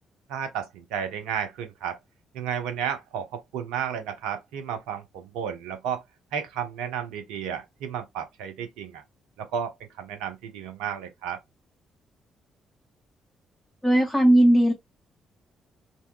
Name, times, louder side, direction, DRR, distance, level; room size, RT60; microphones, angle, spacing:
voice 1, 0.3-2.0 2.3-6.0 6.3-9.0 9.4-11.4, right 8 dB, 75° right, 0.6 m, -32 dB
voice 2, 13.8-14.7, right 1 dB, ahead, 0.8 m, -17 dB
2.7 x 2.2 x 2.3 m
hypercardioid pair, 40°, 0 cm